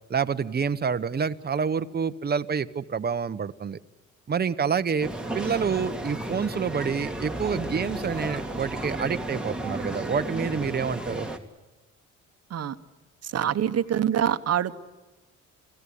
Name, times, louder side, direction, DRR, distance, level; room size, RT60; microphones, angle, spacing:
voice 1, 0.1-3.8 4.3-11.3, right 6 dB, 30° right, 11 dB, 1.0 m, -28 dB
sound 1, 5.0-11.4, right 1 dB, 5° right, 2.1 m, -33 dB
voice 2, 13.2-14.7, right 9 dB, 55° right, 11 dB, 1.2 m, -25 dB
27.5 x 16.5 x 10.0 m, 1.2 s
cardioid pair, 90°, 30 cm